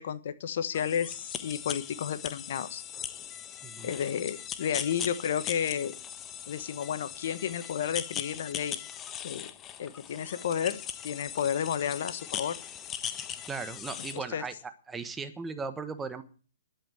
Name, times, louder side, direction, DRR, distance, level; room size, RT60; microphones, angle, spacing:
voice 1, 0.0-2.8 3.8-5.9 6.5-8.8 9.2-9.5 9.8-12.6 14.1-14.4, left 8 dB, 60° left, 12 dB, 1.4 m, -32 dB
sound 1, 0.7-14.2, left 9 dB, 20° left, 1.0 m, -39 dB
voice 2, 3.6-3.9 13.5-14.5 14.9-16.2, right 4 dB, 10° right, 10 dB, 1.2 m, -37 dB
11.5 x 8.7 x 9.2 m, 0.40 s
hypercardioid pair, 130°, 0 cm